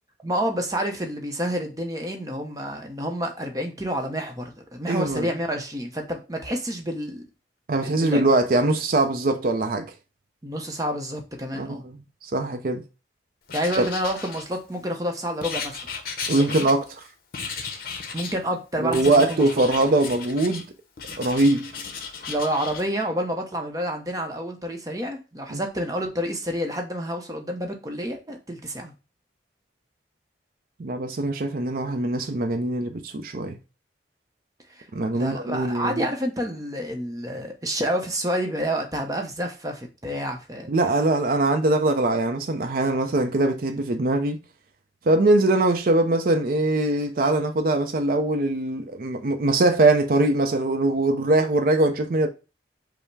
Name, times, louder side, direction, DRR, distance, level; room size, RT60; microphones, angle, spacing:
voice 1, 0.2-7.3 7.8-8.2 10.4-11.8 13.5-15.8 16.4-16.7 18.1-19.7 22.3-28.9 34.7-34.8 35.1-40.7, equal, 20° right, 0.7 m, -29 dB
voice 2, 4.9-5.3 7.7-9.9 11.5-11.8 12.2-12.8 13.8-13.9 16.3-16.9 18.8-20.6 21.2-21.7 25.5-25.6 30.8-33.6 34.9-36.0 40.7-44.4 45.1-52.3, right 2 dB, 50° right, 0.5 m, -22 dB
Writing, 13.5-14.8 15.4-17.0 17.3-18.4 18.9-20.6 21.0-22.8, left 5 dB, 50° left, 0.7 m, -35 dB
5.5 x 2.1 x 4.5 m
head